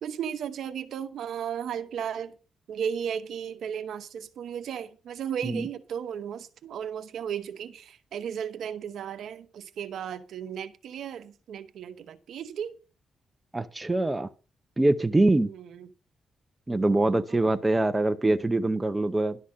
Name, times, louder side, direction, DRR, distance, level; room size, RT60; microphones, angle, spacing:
voice 1, 0.0-2.4 2.7-12.8 15.3-15.9 16.7-17.6, right 8 dB, 80° right, 0.9 m, -35 dB
voice 2, 13.5-14.3 14.8-15.5 16.7-19.4, right 2 dB, 15° right, 0.7 m, -24 dB
11.5 x 4.1 x 7.4 m
cardioid pair, 105°, 0 cm